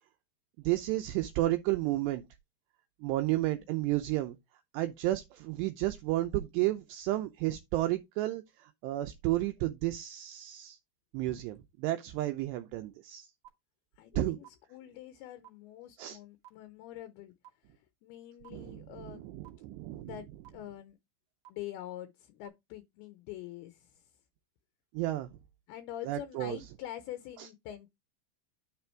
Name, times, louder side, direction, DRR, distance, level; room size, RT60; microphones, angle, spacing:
voice 1, 0.6-2.2 3.0-4.4 4.7-10.8 11.1-13.3 14.2-14.4 16.0-16.2 18.5-20.1 24.9-25.3 26.1-26.6 27.4-27.5, right 16 dB, 85° right, 2.5 m, -32 dB
sound 1, 13.4-13.5 14.4-14.5 15.4-15.5 16.4-16.5 17.4-17.5 18.4-18.5 19.4-19.5 20.4-20.5 21.4-21.5 22.4-22.5, right 14 dB, 65° right, 1.6 m, -51 dB
voice 2, 14.0-19.3 19.9-21.0 21.5-24.1 25.7-27.9, left 12 dB, 80° left, 2.3 m, -45 dB
9.6 x 3.4 x 4.4 m
omnidirectional pair, 5.3 m